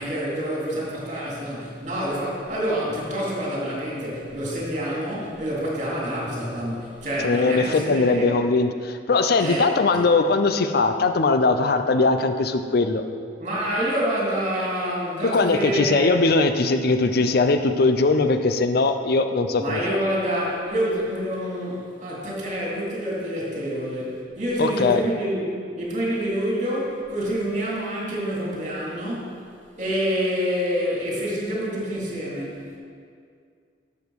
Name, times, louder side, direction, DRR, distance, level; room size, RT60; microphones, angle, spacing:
voice 1, 0.0-8.3 9.4-9.7 13.4-16.1 19.6-29.4 29.8-32.8, equal, 40° right, -4 dB, 2.7 m, -27 dB
voice 2, 7.2-13.0 15.3-19.8 24.6-25.0, left 3 dB, 60° left, 8 dB, 0.5 m, -20 dB
12.0 x 7.1 x 4.7 m, 2.2 s
head